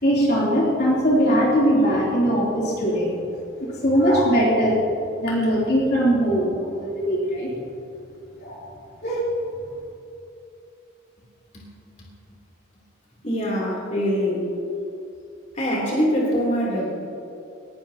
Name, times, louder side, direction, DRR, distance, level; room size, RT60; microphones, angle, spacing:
voice 1, 0.0-3.1 3.6-4.8 5.2-7.5 8.4-8.6 9.0-9.3, equal, 50° left, -5 dB, 3.5 m, -20 dB
voice 2, 13.2-14.5 15.5-16.9, equal, 35° left, -5 dB, 3.4 m, -23 dB
19.5 x 18.0 x 3.0 m, 2.7 s
head